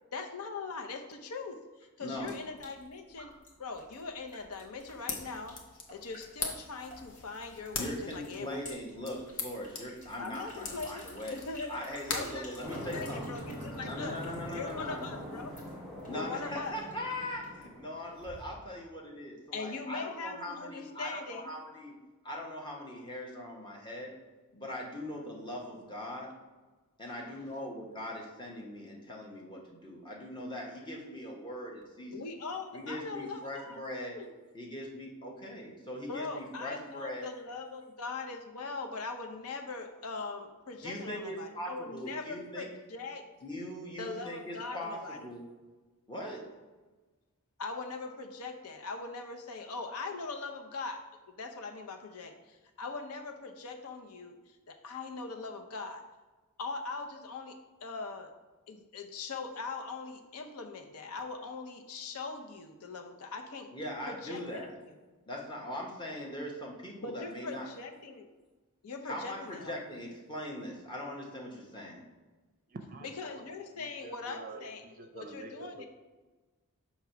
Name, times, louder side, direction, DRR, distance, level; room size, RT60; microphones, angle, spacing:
voice 1, 0.1-3.3 3.6-5.5 5.9-8.8 10.2-11.8 12.1-14.2 14.5-15.5 16.1-16.8 19.5-21.5 27.1-27.7 32.1-34.3 36.1-43.2 44.0-45.3 47.6-56.0 56.6-58.3 58.7-63.7 64.1-64.8 67.0-68.3 68.8-69.7 73.0-75.9, left 4 dB, 80° left, 5 dB, 0.6 m, -41 dB
voice 2, 2.0-2.3 7.8-11.4 11.7-13.3 13.8-15.0 16.1-21.9 22.2-24.1 24.5-26.3 27.0-32.1 32.7-34.2 34.5-37.3 40.8-42.7 43.4-45.4 46.1-46.4 63.7-64.7 65.3-67.7 69.0-72.0, left 1 dB, 20° left, -1 dB, 1.0 m, -40 dB
sound 1, 2.1-17.8, left 1 dB, 40° left, 1.8 m, -54 dB
sound 2, 4.7-13.3, left 4 dB, 60° left, 0.9 m, -42 dB
sound 3, 12.6-18.4, equal, ahead, 1.6 m, -43 dB
voice 3, 72.7-73.5 73.8-75.8, right 3 dB, 40° right, 6 dB, 0.5 m, -47 dB
6.0 x 3.0 x 5.7 m, 1.3 s
head